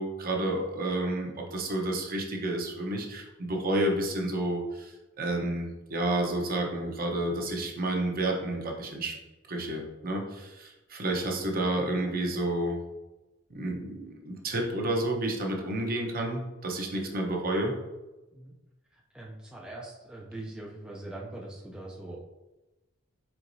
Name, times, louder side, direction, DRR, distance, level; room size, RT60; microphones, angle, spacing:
voice 1, 0.0-9.1 9.5-12.8 13.5-17.7, right 1 dB, 45° right, 1 dB, 0.8 m, -30 dB
voice 2, 18.9-22.2, right 2 dB, 5° right, -4 dB, 0.4 m, -42 dB
4.5 x 4.0 x 2.6 m, 1.1 s
head